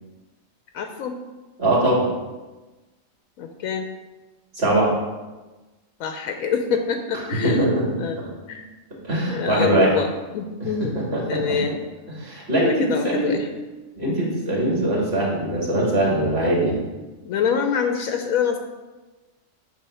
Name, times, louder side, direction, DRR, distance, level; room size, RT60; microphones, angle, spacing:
voice 1, 0.7-1.2 3.4-3.9 6.0-7.7 8.0-8.2 8.5-8.6 9.3-11.0 11.3-11.8 12.6-13.5 17.2-18.6, left 6 dB, 90° left, 5 dB, 1.0 m, -25 dB
voice 2, 1.6-2.1 4.6-4.9 7.4-8.0 9.0-9.9 10.6-10.7 11.0-11.6 12.2-13.4 14.0-16.8, right 1 dB, 50° right, -4 dB, 2.3 m, -21 dB
9.1 x 3.2 x 5.4 m, 1.2 s
omnidirectional pair, 1.4 m